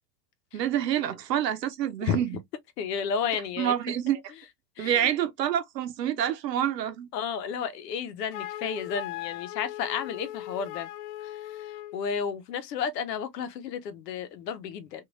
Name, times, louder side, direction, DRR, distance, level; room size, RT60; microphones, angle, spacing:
voice 1, 0.5-2.3 3.6-4.2 4.8-7.1, right 10 dB, 90° right, 0.8 m, -27 dB
voice 2, 2.8-3.7 4.8-5.1 7.1-10.9 11.2-15.0, left 7 dB, 80° left, 0.9 m, -32 dB
Wind instrument woodwind instrument, 8.3-12.0, left 14 dB, 45° left, 0.4 m, -38 dB
3.1 x 2.6 x 2.5 m
hypercardioid pair, 95°, 48 cm